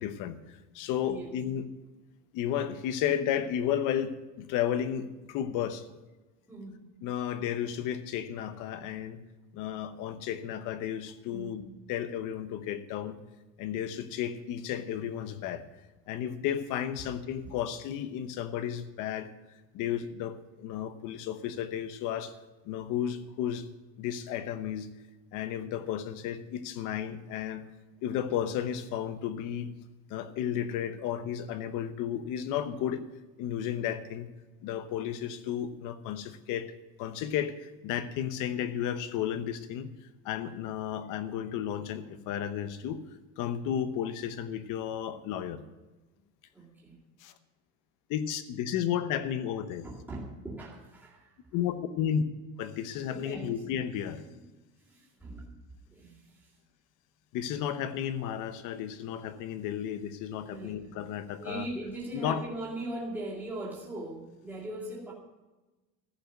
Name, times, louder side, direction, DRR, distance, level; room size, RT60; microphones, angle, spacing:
voice 1, 0.0-1.7 2.3-5.9 7.0-9.2 9.5-11.6 11.9-13.2 13.6-15.6 16.1-19.3 19.7-22.3 22.6-23.6 24.0-24.9 25.3-27.6 28.0-29.7 30.1-33.0 33.4-34.3 34.6-36.7 37.0-39.9 40.2-43.0 43.4-45.6 47.2-47.3 48.1-49.9 51.5-52.2 52.6-54.2 57.3-61.7 62.1-62.4, left 9 dB, 50° left, 12 dB, 1.0 m, -33 dB
voice 2, 6.5-6.9 11.3-11.7 17.4-17.5 46.5-47.0 49.8-51.3 52.0-52.1 53.1-53.6 54.9-55.5 55.9-56.2 60.5-60.8 61.4-65.1, right 1 dB, 5° right, -7 dB, 2.3 m, -40 dB
14.5 x 5.6 x 9.1 m, 1.1 s
cardioid pair, 175°, 40 cm